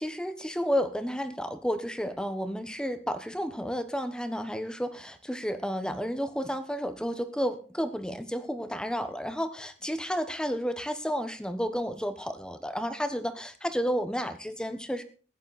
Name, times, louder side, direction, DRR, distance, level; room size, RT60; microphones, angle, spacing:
voice 1, 0.0-15.0, equal, 5° left, 10 dB, 1.1 m, -31 dB
15.5 x 10.5 x 4.2 m, 0.38 s
head